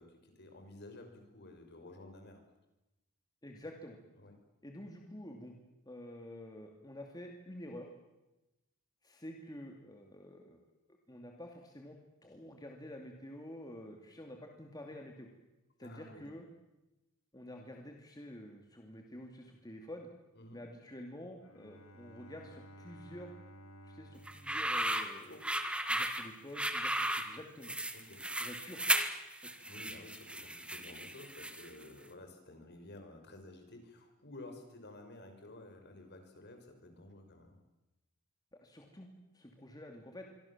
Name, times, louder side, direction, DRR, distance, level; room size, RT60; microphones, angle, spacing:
voice 1, 0.0-2.4 4.2-4.3 15.8-16.2 20.4-20.6 25.3-25.6 27.9-28.2 29.6-37.6, left 2 dB, 55° left, 5 dB, 5.8 m, -52 dB
voice 2, 3.4-4.0 4.6-5.6 5.9-7.9 9.0-10.6 10.9-15.3 15.8-16.5 17.3-20.1 20.5-23.3 23.8-25.4 25.9-27.8 28.4-28.8 29.4-29.9 30.7-31.0 38.5-39.1 39.3-40.3, left 1 dB, 20° left, 2 dB, 2.7 m, -49 dB
Bowed string instrument, 21.4-25.7, right 1 dB, 75° left, 2.7 m, -55 dB
sound 1, 24.3-31.8, right 1 dB, 5° right, 1.7 m, -35 dB
27.0 x 24.0 x 7.4 m, 0.98 s
head